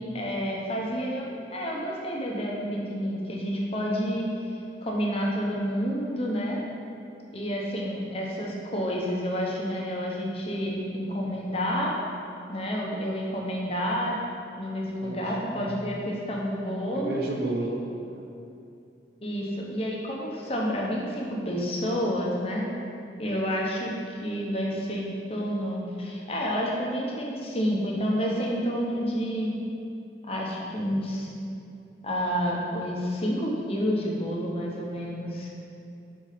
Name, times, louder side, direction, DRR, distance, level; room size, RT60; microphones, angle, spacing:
voice 1, 0.0-4.3 4.8-6.6 7.3-11.9 12.5-14.1 14.6-17.2 19.2-22.6 23.2-29.5 30.2-31.3 32.0-35.5, equal, 35° left, -3 dB, 0.9 m, -29 dB
voice 2, 15.0-15.7 16.9-18.3, right 2 dB, 60° right, -1 dB, 0.7 m, -32 dB
5.0 x 4.4 x 5.7 m, 2.6 s
head